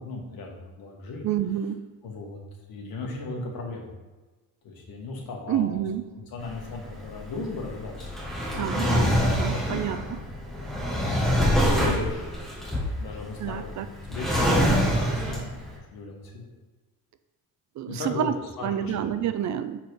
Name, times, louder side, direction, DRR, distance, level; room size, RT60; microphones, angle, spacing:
voice 1, 0.0-1.3 2.0-2.4 2.7-3.9 4.6-5.7 6.1-10.0 11.1-12.3 13.0-16.5 17.9-19.1, left 3 dB, 70° left, 0 dB, 1.8 m, -36 dB
voice 2, 1.2-1.8 5.5-6.0 8.6-10.0 13.4-13.9 17.8-18.3 18.6-19.8, right 10 dB, 50° right, 10 dB, 0.5 m, -28 dB
Drawer open or close, 6.4-15.7, equal, ahead, 2.1 m, -25 dB
6.6 x 4.4 x 4.7 m, 1.2 s
cardioid pair, 130°, 37 cm